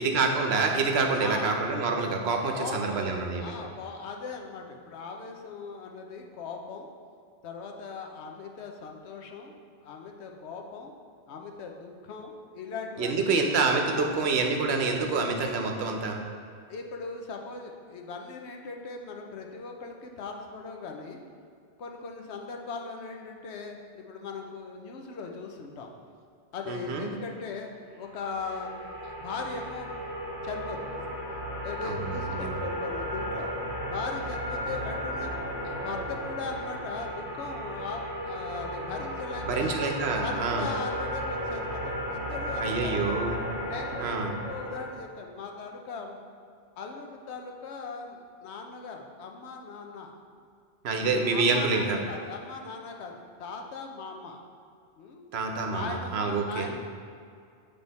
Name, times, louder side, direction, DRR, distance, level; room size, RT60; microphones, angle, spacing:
voice 1, 0.0-3.5 13.0-16.2 26.7-27.1 31.8-32.6 39.4-40.7 42.6-43.4 44.0-44.3 50.8-52.0 55.3-56.7, right 4 dB, 75° right, 3 dB, 0.9 m, -27 dB
voice 2, 1.2-1.6 2.5-6.9 7.4-10.9 11.3-13.4 13.9-14.2 16.7-21.2 21.8-25.9 26.5-29.9 30.4-31.1 31.6-33.5 33.9-39.8 40.2-43.2 43.6-46.2 46.8-50.1 50.9-54.4 55.0-55.2 55.6-56.8, left 4 dB, 85° left, 3 dB, 1.0 m, -39 dB
sound 1, 28.0-44.8, equal, 20° right, 1.5 m, -34 dB
7.8 x 3.4 x 4.0 m, 2.3 s
omnidirectional pair, 1.1 m